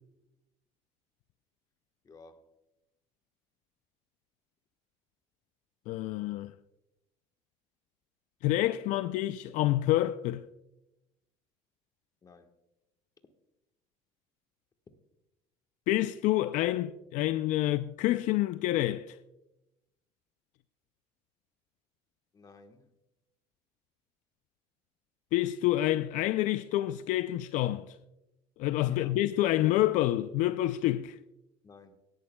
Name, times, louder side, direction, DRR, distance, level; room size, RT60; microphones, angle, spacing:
voice 1, 2.0-2.5 12.2-12.5 22.3-22.9 28.8-29.1 31.6-32.0, left 4 dB, 30° left, 1.2 m, -54 dB
voice 2, 5.9-6.5 8.4-10.5 15.9-19.2 25.3-28.0 28.6-31.2, left 15 dB, 70° left, 0.4 m, -28 dB
17.0 x 11.0 x 2.2 m
cardioid pair, 115°, 13 cm